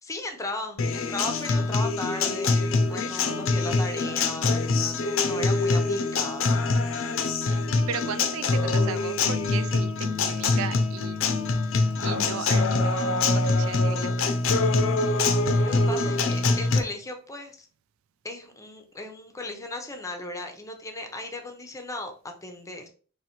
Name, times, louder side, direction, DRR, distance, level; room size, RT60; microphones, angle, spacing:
voice 1, 0.0-6.5 15.6-17.7 18.2-22.9, left 2 dB, 15° left, 0.7 m, -36 dB
Acoustic guitar, 0.8-16.8, left 3 dB, 75° left, 0.6 m, -24 dB
voice 2, 7.5-11.3 11.9-14.5, right 7 dB, 80° right, 0.4 m, -36 dB
4.5 x 3.1 x 3.0 m
head